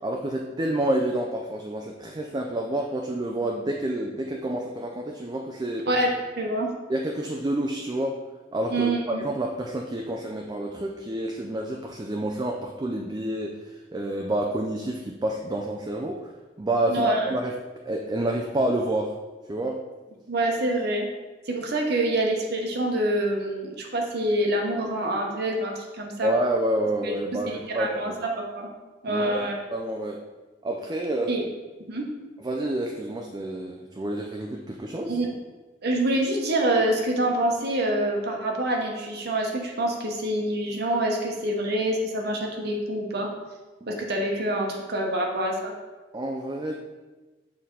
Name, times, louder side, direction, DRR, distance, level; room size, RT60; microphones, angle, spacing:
voice 1, 0.0-5.9 6.9-8.2 8.5-16.3 16.6-17.5 17.9-19.1 19.5-19.8 26.2-28.2 29.1-29.4 29.7-30.2 30.6-31.3 32.4-35.2 43.8-44.0 46.1-46.8, right 1 dB, 20° right, 1 dB, 0.4 m, -28 dB
voice 2, 6.4-6.7 8.7-9.2 16.9-17.3 20.3-21.1 21.5-26.3 27.0-27.1 27.5-28.7 29.0-29.6 31.3-31.4 31.9-32.1 35.1-35.3 35.8-43.3 43.9-45.7, right 1 dB, 60° right, 1 dB, 1.0 m, -26 dB
6.4 x 4.2 x 3.8 m, 1.2 s
head